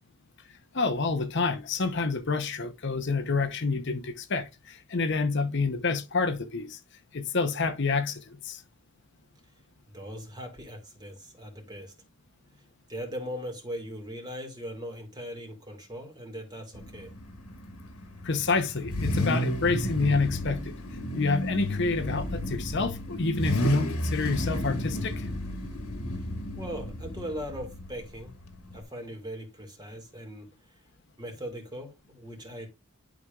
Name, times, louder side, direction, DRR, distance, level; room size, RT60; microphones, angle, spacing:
voice 1, 0.7-6.8 7.1-8.6 18.2-20.7 21.2-25.3, left 4 dB, 55° left, 0.9 m, -28 dB
voice 2, 9.9-11.9 12.9-17.1 26.6-28.3 28.7-30.5 31.2-32.7, equal, 20° right, 1.9 m, -39 dB
Car / Idling / Accelerating revving vroom, 16.7-28.8, equal, 85° left, 1.7 m, -32 dB
11.0 x 5.1 x 2.4 m
head